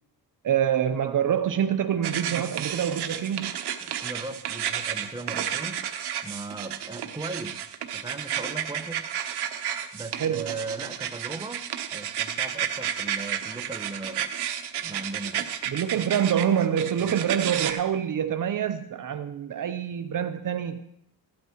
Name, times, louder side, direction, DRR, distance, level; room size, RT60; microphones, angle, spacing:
voice 1, 0.4-3.5 10.1-10.5 15.7-20.8, right 9 dB, 55° right, 0.8 m, -26 dB
sound 1, 2.0-17.7, right 9 dB, 80° right, 1.1 m, -32 dB
voice 2, 3.8-5.8 6.2-7.6 7.9-9.0 9.9-11.6 11.9-14.3 14.8-15.5 17.0-17.2, right 3 dB, 10° right, 1.1 m, -38 dB
16.0 x 12.0 x 3.0 m
cardioid pair, 95°, 39 cm